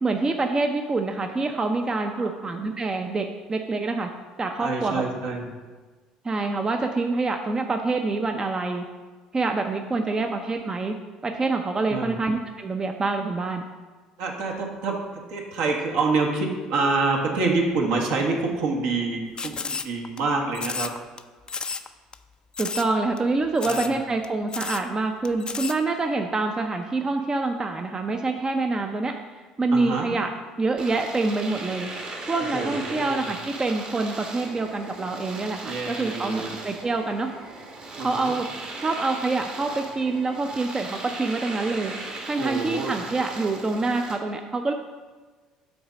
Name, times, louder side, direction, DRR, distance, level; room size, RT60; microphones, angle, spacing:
voice 1, 0.0-4.1 4.4-5.0 6.2-8.8 9.3-11.0 11.2-13.6 22.6-29.1 29.6-30.3 30.6-31.9 32.3-37.3 38.0-38.5 38.8-41.9 42.3-44.7, right 3 dB, 25° right, 4 dB, 0.6 m, -26 dB
voice 2, 4.6-5.5 11.9-12.2 14.2-20.9 23.6-24.0 29.7-30.1 32.5-33.3 35.6-36.5 37.9-38.3 42.4-43.0, right 3 dB, 70° right, 0 dB, 1.3 m, -27 dB
sound 1, 19.4-20.2 20.5-21.2 21.5-21.9 22.1-22.2 22.5-22.9 23.2-23.3 23.6-24.0 24.2-24.3 24.5-24.8 25.2-25.8, left 5 dB, 30° left, 0.4 m, -31 dB
Domestic sounds home sounds, 30.8-44.2, right 2 dB, 50° right, 1.5 m, -38 dB
6.1 x 4.0 x 6.1 m, 1.4 s
hypercardioid pair, 65°, 3 cm